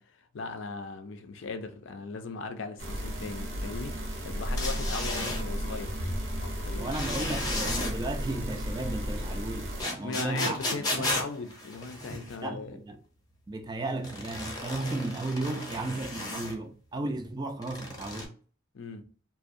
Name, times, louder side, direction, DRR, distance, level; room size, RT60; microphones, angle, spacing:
voice 1, 0.0-4.0 4.2-6.0 6.4-7.0 10.0-12.8 18.7-19.1, left 4 dB, 60° left, 0.4 m, -38 dB
sound 1, 2.8-9.8, equal, 65° right, 0.6 m, -34 dB
sound 2, 4.6-5.4 6.9-7.9 9.8-12.4 14.0-16.5 17.6-18.3, left 2 dB, 20° left, 0.6 m, -34 dB
voice 2, 6.8-11.1 12.4-13.0 13.5-18.3, right 2 dB, 20° right, 0.3 m, -34 dB
2.6 x 2.0 x 2.5 m
head